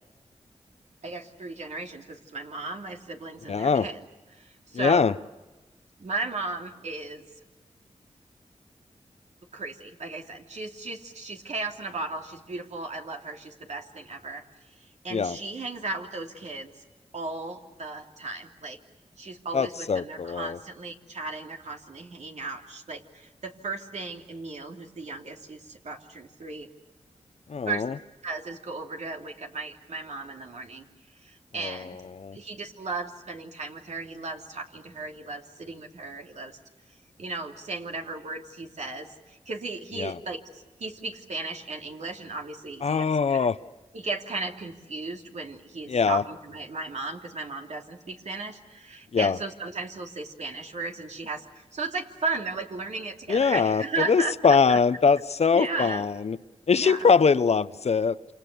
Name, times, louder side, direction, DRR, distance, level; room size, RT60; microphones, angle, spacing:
voice 1, 1.0-4.1 4.3-5.1 6.0-7.2 9.5-14.4 14.8-16.7 17.1-18.8 19.2-26.7 27.6-27.9 28.2-30.9 31.2-32.0 32.3-36.6 37.2-43.5 43.9-54.8 55.5-56.0 56.7-57.1, right 3 dB, 70° right, 3.0 m, -35 dB
voice 2, 3.5-3.9 4.7-5.1 15.1-15.4 19.5-20.6 27.5-27.9 31.6-31.8 32.2-32.4 40.0-40.1 42.8-43.6 45.9-46.2 49.1-49.4 53.3-56.4 56.7-58.3, left 5 dB, 60° left, 0.8 m, -22 dB
28.0 x 27.0 x 6.9 m
cardioid pair, 50°, 12 cm